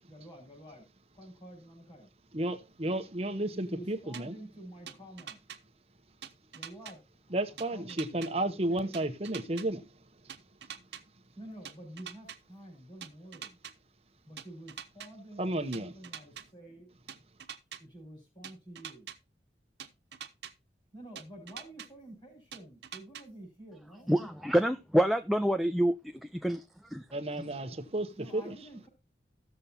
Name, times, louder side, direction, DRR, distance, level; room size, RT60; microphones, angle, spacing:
voice 1, 0.1-0.9 1.1-2.1 3.5-5.4 6.5-8.9 11.3-13.6 14.3-16.9 17.8-19.1 20.9-24.1 28.1-28.9, right 1 dB, 25° left, 5.0 m, -49 dB
voice 2, 2.3-4.3 7.3-9.8 15.4-15.9 27.1-28.5, right 1 dB, 35° right, 0.9 m, -32 dB
sound 1, 4.1-4.2 4.9-5.6 6.2-6.9 7.6-8.3 8.9-9.7 10.3-11.0 11.6-12.4 13.0-13.7 14.4-15.1 15.7-16.4 17.1-17.8 18.4-19.2 19.8-20.5 21.2-21.9 22.5-23.2, right 8 dB, 80° right, 1.0 m, -44 dB
voice 3, 24.1-27.1, equal, ahead, 0.4 m, -27 dB
16.0 x 6.8 x 2.8 m
head